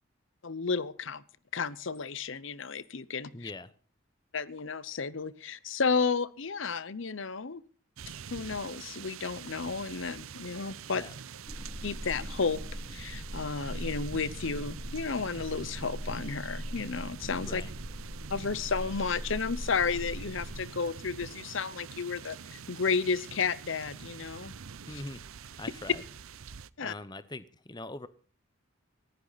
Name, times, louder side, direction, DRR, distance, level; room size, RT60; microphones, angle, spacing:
voice 1, 0.4-1.2 1.5-3.5 4.3-7.6 8.3-11.0 11.8-12.6 12.9-17.6 18.3-24.5 24.9-25.0 26.8-26.9, left 5 dB, 65° left, 18 dB, 0.8 m, -32 dB
voice 2, 3.3-3.7 10.9-11.1 17.4-17.8 24.9-25.2 25.5-26.0 26.8-28.1, left 2 dB, 20° left, 15 dB, 0.8 m, -42 dB
sound 1, 8.0-26.7, right 6 dB, 85° right, 0.7 m, -45 dB
sound 2, 11.5-20.6, equal, ahead, 1.8 m, -41 dB
19.0 x 15.0 x 4.1 m, 0.40 s
head